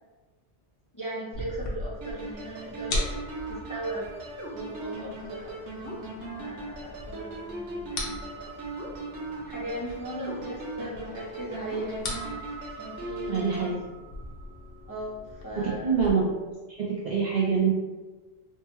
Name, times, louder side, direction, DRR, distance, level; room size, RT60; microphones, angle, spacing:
voice 1, 0.9-3.0 3.5-4.1 4.5-5.9 6.3-8.6 9.4-12.4 12.8-13.8 14.9-16.0, right 1 dB, 25° left, -7 dB, 0.5 m, -38 dB
sound 1, 1.3-16.1, left 1 dB, 60° left, 0.8 m, -39 dB
sound 2, 2.0-13.7, right 2 dB, 90° right, 0.9 m, -39 dB
voice 2, 13.3-13.8 15.8-17.8, right 5 dB, 55° right, -6 dB, 0.5 m, -25 dB
3.5 x 2.1 x 2.9 m, 1.2 s
omnidirectional pair, 1.2 m